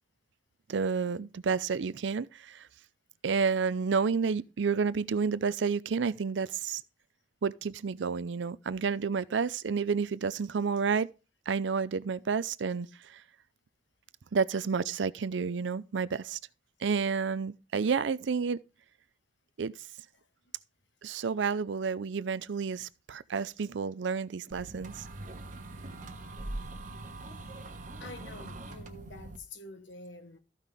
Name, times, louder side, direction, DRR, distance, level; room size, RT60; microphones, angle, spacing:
voice 1, 0.7-2.7 3.2-6.8 7.4-11.1 11.5-13.2 14.3-16.4 16.8-18.6 19.6-19.7 21.0-25.1, right 5 dB, 80° right, 0.5 m, -30 dB
sound 1, 24.5-29.4, right 2 dB, 45° right, 1.3 m, -42 dB
voice 2, 26.4-26.8 27.3-30.4, left 2 dB, 85° left, 1.3 m, -49 dB
14.0 x 5.7 x 3.5 m
head